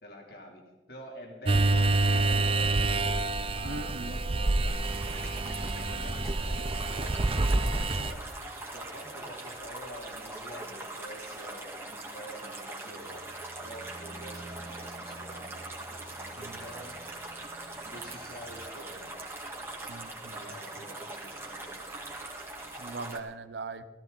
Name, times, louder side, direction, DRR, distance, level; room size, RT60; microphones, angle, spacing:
voice 1, 0.0-3.2 3.5-8.4 8.7-13.3 13.6-17.0 17.8-19.1 20.3-21.7, equal, 60° left, 0 dB, 3.1 m, -47 dB
sound 1, 1.5-8.1, right 2 dB, 30° right, 0.5 m, -27 dB
voice 2, 3.6-4.2 16.4-16.7 19.9-20.9 22.8-23.9, right 3 dB, 75° right, 11 dB, 0.8 m, -41 dB
sound 2, 4.7-23.2, right 1 dB, 15° right, 2.1 m, -41 dB
sound 3, 12.8-18.6, right 2 dB, 55° right, 2.5 m, -50 dB
16.5 x 15.0 x 4.0 m, 1.2 s
head